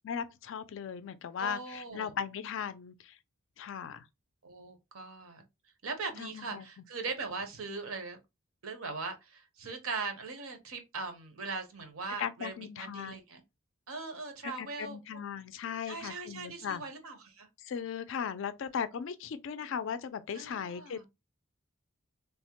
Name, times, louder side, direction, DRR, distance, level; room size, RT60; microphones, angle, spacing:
voice 1, 0.0-3.2 3.6-4.1 6.2-6.7 12.2-13.2 14.6-16.8 17.6-21.0, left 7 dB, 55° left, 0.3 m, -37 dB
voice 2, 1.4-2.1 4.4-5.4 5.8-8.2 8.6-13.4 13.9-15.0 15.9-17.5 20.3-21.0, right 4 dB, 70° right, 0.8 m, -40 dB
3.3 x 2.1 x 2.8 m
head